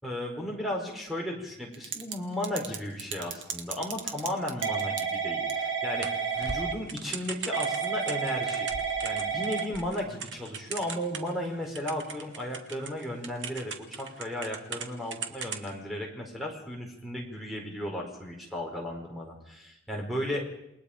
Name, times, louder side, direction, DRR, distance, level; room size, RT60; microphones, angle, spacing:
voice 1, 0.0-8.7 9.0-20.4, left 1 dB, ahead, 0 dB, 4.4 m, -35 dB
Typing / Telephone, 1.7-2.1 2.4-11.5 11.7-14.9 15.1-15.7, right 6 dB, 80° right, 1.9 m, -32 dB
sound 1, 3.3-3.5 6.0-7.1 8.5-10.2 10.5-10.6 10.8-11.4 12.0-14.6 15.6-15.9 16.3-16.7 17.1-17.8, right 2 dB, 55° right, 1.1 m, -45 dB
28.5 x 20.5 x 5.1 m, 0.81 s
head